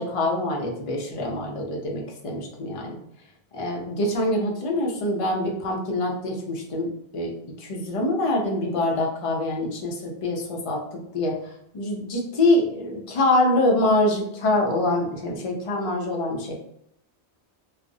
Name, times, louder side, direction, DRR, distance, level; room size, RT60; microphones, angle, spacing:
voice 1, 0.0-3.0 3.5-16.6, left 1 dB, 45° left, 0 dB, 0.4 m, -25 dB
2.4 x 2.0 x 2.6 m, 0.74 s
omnidirectional pair, 1.1 m